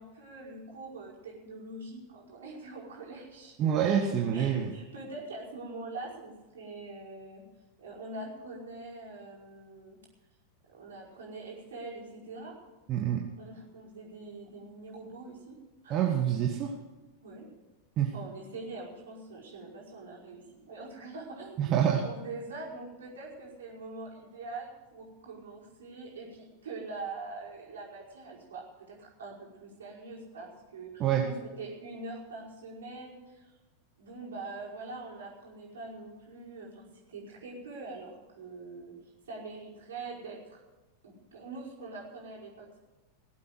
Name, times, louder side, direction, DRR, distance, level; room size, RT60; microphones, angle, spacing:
voice 1, 0.0-3.7 4.3-7.4 7.8-10.0 10.7-12.6 13.4-15.6 15.8-16.1 17.2-17.5 18.1-33.6 34.0-40.6 41.0-42.8, right 3 dB, 65° right, -3 dB, 5.3 m, -44 dB
voice 2, 3.6-4.7 12.9-13.2 15.9-16.8 18.0-18.1 21.6-22.1 31.0-31.3, right 9 dB, 35° right, 1 dB, 1.6 m, -26 dB
19.0 x 8.4 x 7.9 m, 1.1 s
figure-of-eight pair, 90°, 0 cm